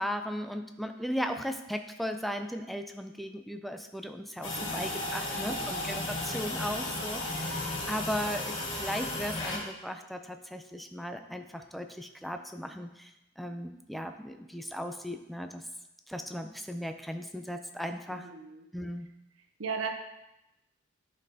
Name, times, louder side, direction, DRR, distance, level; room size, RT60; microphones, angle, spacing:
voice 1, 0.0-13.1 13.4-15.6 16.1-18.3 18.7-19.1, equal, ahead, 6 dB, 0.4 m, -37 dB
Flushing Toilet, 4.4-9.6, left 2 dB, 70° left, 1.8 m, -34 dB
voice 2, 4.5-5.0 5.4-5.8 18.1-18.6 19.6-19.9, right 5 dB, 75° right, 5 dB, 0.8 m, -38 dB
10.5 x 4.2 x 2.8 m, 0.91 s
head